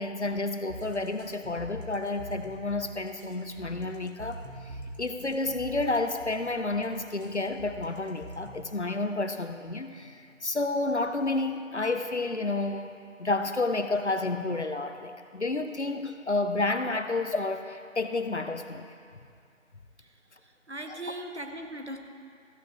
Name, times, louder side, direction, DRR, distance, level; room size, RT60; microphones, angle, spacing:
voice 1, 0.0-12.9 13.2-18.9, left 2 dB, 60° left, 8 dB, 0.7 m, -30 dB
sound 1, 0.7-8.7, equal, 75° right, 2.2 m, -43 dB
voice 2, 20.4-22.0, right 1 dB, 55° right, 5 dB, 1.1 m, -39 dB
15.0 x 11.0 x 3.0 m, 2.3 s
figure-of-eight pair, 170°, 39 cm